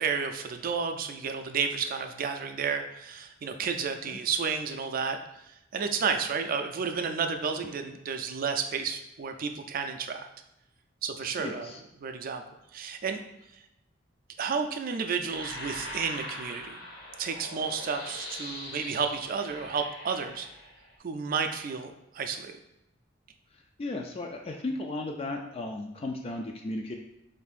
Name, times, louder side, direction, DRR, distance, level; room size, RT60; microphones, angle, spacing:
voice 1, 0.0-5.2 5.7-10.3 11.0-11.7 12.0-12.4 12.7-13.2 14.4-16.8 17.2-20.5 21.0-22.5, right 5 dB, 50° right, 6 dB, 0.4 m, -31 dB
voice 2, 11.4-11.8 23.8-27.0, left 2 dB, 30° left, 3 dB, 0.3 m, -35 dB
sound 1, 15.3-20.9, left 1 dB, 75° left, 1.6 m, -42 dB
6.8 x 2.6 x 2.4 m, 0.87 s
head